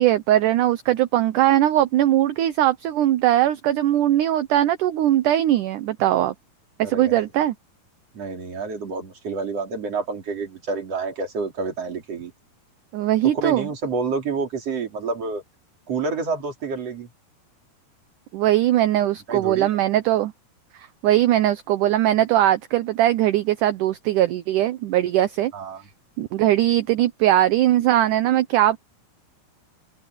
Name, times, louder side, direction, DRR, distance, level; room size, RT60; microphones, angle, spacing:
voice 1, 0.0-6.4 6.8-7.6 12.9-13.7 18.3-20.3 21.0-25.5 26.2-28.8, right 13 dB, 75° right, 1.9 m, -20 dB
voice 2, 6.8-7.3 8.1-12.3 13.2-15.4 15.9-17.1 19.3-19.8 25.5-25.8, right 4 dB, 40° right, 4.4 m, -28 dB
omnidirectional pair, 4.5 m